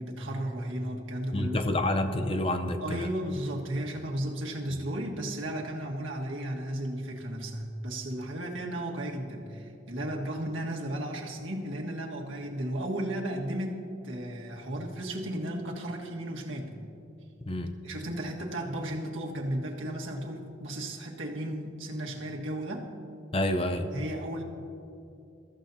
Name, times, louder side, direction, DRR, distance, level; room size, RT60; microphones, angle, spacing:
voice 1, 0.0-1.6 2.8-16.7 17.8-22.9 23.9-24.4, right 1 dB, 80° right, 0 dB, 1.7 m, -34 dB
voice 2, 1.3-3.1 17.4-17.7 23.3-23.9, left 1 dB, 30° left, 7 dB, 0.6 m, -28 dB
22.5 x 14.5 x 2.8 m, 2.6 s
head